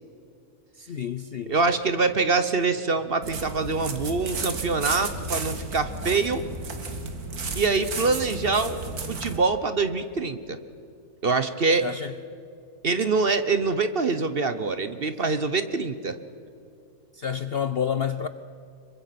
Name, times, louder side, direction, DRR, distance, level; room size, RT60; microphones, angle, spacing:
voice 1, 0.8-1.5 11.8-12.1 17.1-18.3, left 8 dB, 55° left, 0.7 m, -29 dB
voice 2, 1.5-6.5 7.6-10.6 11.2-11.9 12.8-16.2, right 4 dB, 45° right, 1.1 m, -25 dB
sound 1, 3.2-9.4, right 3 dB, 70° right, 2.3 m, -33 dB
26.0 x 23.5 x 5.9 m
omnidirectional pair, 1.6 m